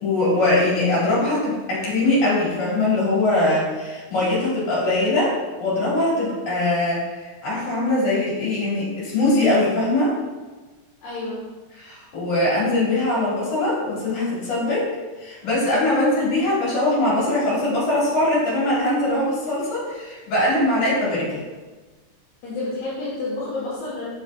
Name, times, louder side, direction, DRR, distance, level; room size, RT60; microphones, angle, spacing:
voice 1, 0.0-10.1 11.8-14.9 15.2-21.4, left 2 dB, 65° left, -7 dB, 3.2 m, -22 dB
voice 2, 11.0-11.5 22.4-24.1, left 2 dB, 80° left, -8 dB, 2.6 m, -30 dB
5.6 x 5.3 x 3.5 m, 1.3 s
omnidirectional pair, 3.3 m